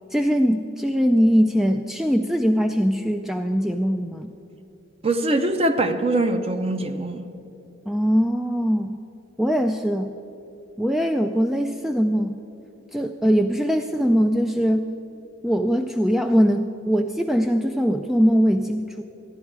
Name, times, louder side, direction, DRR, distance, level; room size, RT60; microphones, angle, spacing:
voice 1, 0.1-4.3 7.9-8.9 9.4-10.1 10.8-12.4 12.9-14.9 15.4-19.0, equal, ahead, 0.3 m, -21 dB
voice 2, 5.0-7.3, right 2 dB, 30° right, 0.7 m, -22 dB
15.0 x 11.0 x 4.7 m
head